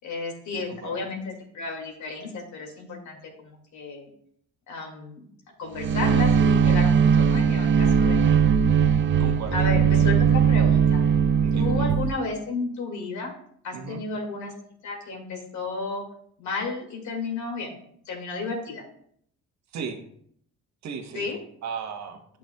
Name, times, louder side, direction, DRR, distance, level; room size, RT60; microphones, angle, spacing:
voice 1, 0.0-4.1 4.7-5.3 5.6-8.2 9.5-11.0 11.5-13.3 13.6-14.5 14.8-16.0 16.4-17.8 18.1-18.8 21.1-21.4, left 3 dB, 75° left, 1 dB, 2.2 m, -32 dB
voice 2, 0.5-1.0 9.2-9.7 11.4-11.9 13.7-14.0 19.7-20.0 20.8-21.3 21.6-22.2, right 6 dB, 65° right, 4 dB, 1.2 m, -36 dB
sound 1, 5.8-12.1, right 7 dB, 40° right, 0.5 m, -19 dB
10.5 x 6.1 x 2.3 m, 0.67 s
cardioid pair, 90°, 30 cm